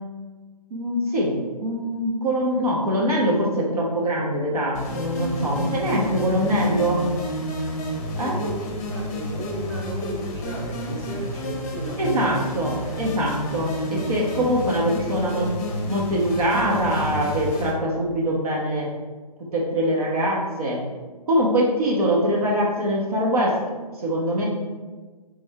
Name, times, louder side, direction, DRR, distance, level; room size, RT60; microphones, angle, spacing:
voice 1, 0.7-7.0 8.2-8.3 12.0-15.5 15.9-18.9 19.5-20.8 21.3-23.6 23.9-24.5, equal, 65° right, -4 dB, 1.1 m, -23 dB
sound 1, 4.7-17.7, left 1 dB, 25° left, 0.7 m, -30 dB
voice 2, 8.2-12.9 13.8-14.2 15.0-15.4, right 1 dB, 35° right, -3 dB, 1.3 m, -35 dB
4.2 x 3.5 x 3.5 m, 1.4 s
figure-of-eight pair, 140°, 21 cm